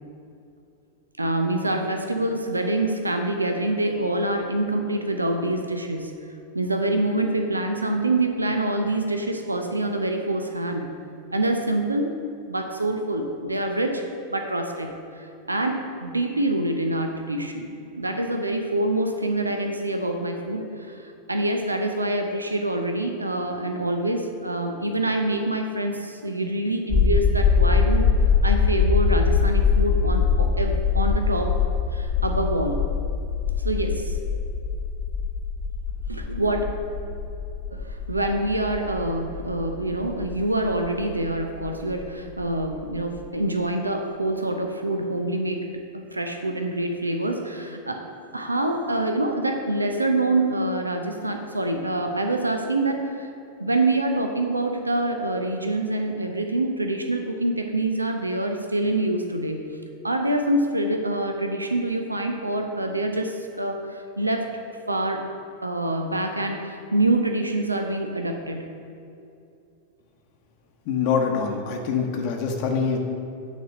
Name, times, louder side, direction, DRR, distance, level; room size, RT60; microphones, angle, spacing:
voice 1, 1.2-6.1 6.5-10.9 11.3-12.1 12.5-14.0 14.3-28.1 28.4-31.5 31.9-32.8 33.6-34.2 36.1-36.6 37.7-45.7 45.9-48.1 48.3-53.3 53.6-59.7 60.0-64.6 64.9-65.3 65.6-68.7, right 1 dB, 80° right, 5 dB, 0.6 m, -26 dB
sound 1, 26.9-42.9 43.2-43.3, left 5 dB, 10° left, 0.7 m, -23 dB
voice 2, 70.9-73.0, left 6 dB, 45° left, 2 dB, 0.9 m, -24 dB
9.9 x 4.2 x 6.1 m, 2.6 s
figure-of-eight pair, 90°, 0 cm